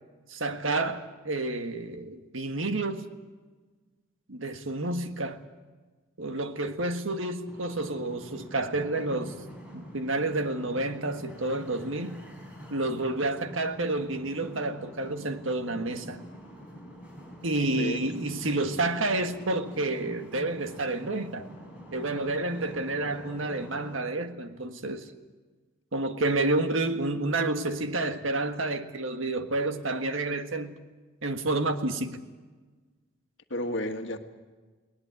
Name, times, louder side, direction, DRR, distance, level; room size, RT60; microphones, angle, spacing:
voice 1, 0.3-3.1 4.3-5.4 6.2-9.4 9.7-12.2 12.7-16.2 17.4-21.5 21.9-25.1 25.9-30.8 31.2-32.2, right 2 dB, 75° right, 1.6 m, -29 dB
sound 1, 7.5-24.0, equal, 5° right, 5.5 m, -46 dB
voice 2, 18.5-18.9 33.5-34.2, left 1 dB, 65° left, 1.7 m, -33 dB
20.5 x 19.0 x 9.3 m
head